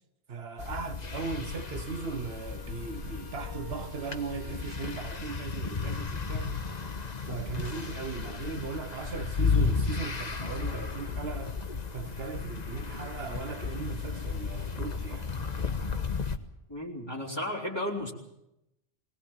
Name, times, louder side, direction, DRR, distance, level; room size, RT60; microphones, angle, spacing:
voice 1, 0.3-6.6 7.3-11.6 11.9-15.3, right 5 dB, 75° right, 1.2 m, -38 dB
sound 1, 0.6-16.4, left 5 dB, 40° left, 1.3 m, -34 dB
Wind instrument woodwind instrument, 1.4-6.0, left 3 dB, 20° right, 2.4 m, -53 dB
voice 2, 16.7-18.1, left 1 dB, 25° left, 3.7 m, -33 dB
20.5 x 19.5 x 7.4 m
omnidirectional pair, 1.1 m